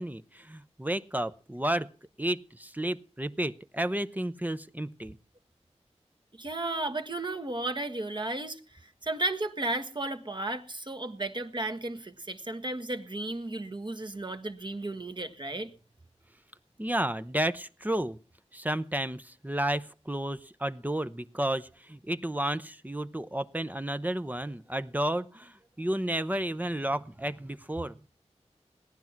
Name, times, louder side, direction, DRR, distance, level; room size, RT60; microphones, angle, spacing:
voice 1, 0.0-1.9 2.2-5.2 16.8-18.2 18.5-27.9, right 1 dB, 15° right, 0.7 m, -32 dB
voice 2, 6.4-15.7, right 2 dB, 40° right, 1.6 m, -34 dB
17.5 x 11.0 x 5.9 m
wide cardioid pair, 70°, 12 cm